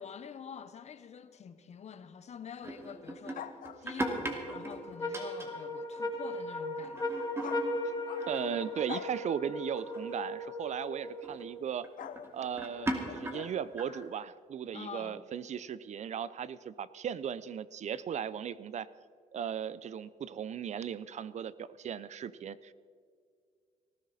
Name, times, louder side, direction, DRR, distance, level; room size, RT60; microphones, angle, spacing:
voice 1, 0.0-3.5 3.8-7.2 14.7-15.2, left 7 dB, 50° left, 1.0 m, -47 dB
sound 1, 2.6-5.7 6.0-6.3 6.6-9.3 9.8-10.2 11.2-11.4 11.8-14.0, right 1 dB, 15° right, 2.5 m, -39 dB
sound 2, 3.3-4.2 7.4-8.5 8.9-9.2 10.4-10.7 12.0-14.2, left 10 dB, 70° left, 0.7 m, -46 dB
sound 3, 4.0-11.6, left 1 dB, 25° left, 3.4 m, -37 dB
voice 2, 8.3-11.9 12.3-18.9 19.3-22.7, right 8 dB, 55° right, 0.5 m, -37 dB
19.0 x 14.5 x 4.1 m
cardioid pair, 85°, 15 cm